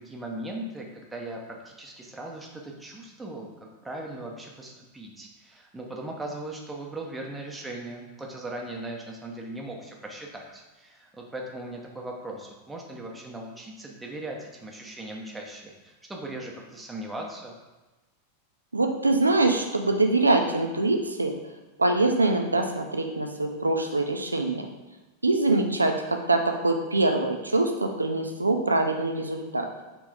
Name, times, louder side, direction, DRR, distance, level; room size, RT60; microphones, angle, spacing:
voice 1, 0.0-17.5, right 1 dB, 10° right, -1 dB, 0.8 m, -38 dB
voice 2, 18.7-21.3 21.8-24.7 25.2-29.7, right 2 dB, 80° right, 4 dB, 0.5 m, -24 dB
3.6 x 3.0 x 4.8 m, 1.1 s
figure-of-eight pair, 90°, 0 cm